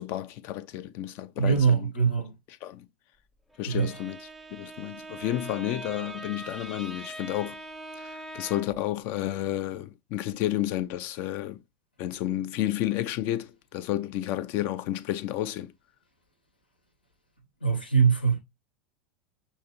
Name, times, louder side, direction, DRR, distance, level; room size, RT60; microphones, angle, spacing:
voice 1, 0.0-1.9 2.6-2.8 3.6-4.2 4.5-7.6 8.0-11.6 12.0-15.7, left 13 dB, 45° left, 0.5 m, -31 dB
voice 2, 1.4-2.3 3.7-3.9 17.6-18.4, right 6 dB, 80° left, 1.2 m, -23 dB
Bowed string instrument, 3.5-8.9, right 1 dB, ahead, 0.7 m, -42 dB
6.4 x 2.7 x 2.9 m
figure-of-eight pair, 80°, 5 cm